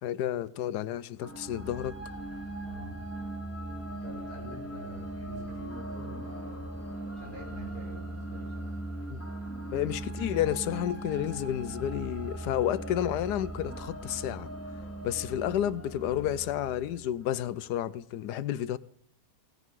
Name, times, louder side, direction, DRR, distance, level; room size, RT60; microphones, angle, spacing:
voice 1, 0.0-2.0 9.1-9.2 9.7-14.5 15.0-18.8, left 11 dB, 90° left, 1.3 m, -31 dB
sound 1, 1.2-17.4, right 1 dB, 10° left, 2.5 m, -39 dB
voice 2, 2.5-2.9 3.9-6.7 7.2-8.7, equal, 75° right, 7.0 m, -47 dB
17.0 x 11.0 x 3.7 m
omnidirectional pair, 1.7 m